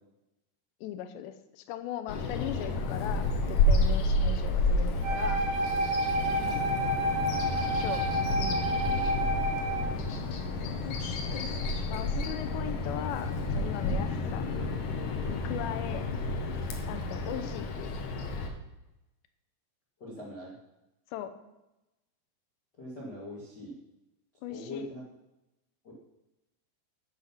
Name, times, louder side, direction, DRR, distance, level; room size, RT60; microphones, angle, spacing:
voice 1, 0.8-5.4 7.8-8.1 8.4-8.6 9.0-9.2 11.4-11.5 11.9-14.4 15.3-16.1 16.8-18.0 21.1-21.3 24.4-24.9, left 11 dB, 80° left, 9 dB, 3.0 m, -39 dB
Bird vocalization bird call bird song, 2.1-18.5, left 2 dB, 60° left, 2.2 m, -30 dB
Wind instrument woodwind instrument, 5.0-9.9, right 1 dB, 60° right, 4.2 m, -30 dB
voice 2, 10.6-11.0 17.3-17.5 20.0-20.5 22.8-23.7 24.5-25.0 25.8-25.9, left 1 dB, 35° left, -5 dB, 2.0 m, -42 dB
12.0 x 8.3 x 5.8 m, 0.96 s
omnidirectional pair, 5.1 m